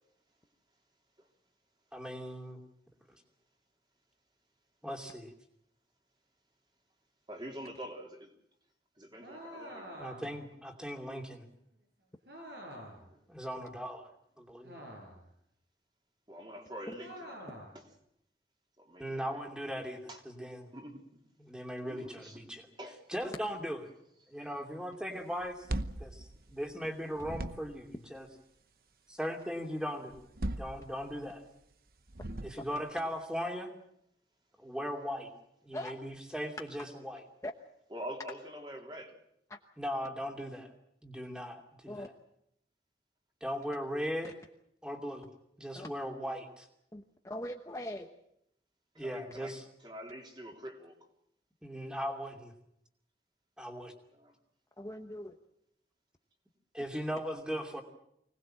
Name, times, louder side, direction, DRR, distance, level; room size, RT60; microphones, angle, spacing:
voice 1, 1.9-2.6 3.1-3.2 4.8-5.3 10.0-11.5 13.3-14.1 14.4-14.8 19.0-20.7 21.4-22.7 23.1-23.8 24.3-25.7 26.0-28.3 29.1-30.2 30.5-31.4 32.4-33.7 34.6-35.3 35.6-37.2 39.8-40.7 41.0-41.9 43.4-44.3 44.8-45.3 45.6-46.7 49.0-49.6 51.6-52.5 53.6-53.9 56.7-57.8, equal, 5° right, 3 dB, 2.7 m, -38 dB
voice 2, 7.3-8.3 9.0-9.9 13.0-13.2 16.3-17.5 17.7-17.8 18.8-19.4 20.1-20.2 20.7-21.2 21.9-22.4 22.8-23.0 32.7-32.9 37.9-39.2 48.9-51.1 54.1-54.3, equal, 25° right, 2 dB, 3.3 m, -46 dB
sound 1, 9.2-10.4 12.3-13.1 14.6-15.3 17.0-17.8, equal, 70° right, 7.7 m, -47 dB
sound 2, 25.4-26.9 27.2-27.9 30.1-31.3 32.1-32.9, right 1 dB, 55° right, 1.0 m, -39 dB
voice 3, 46.9-48.1 54.8-55.4, left 1 dB, 15° left, 4 dB, 1.0 m, -41 dB
25.0 x 19.0 x 7.6 m, 0.75 s
head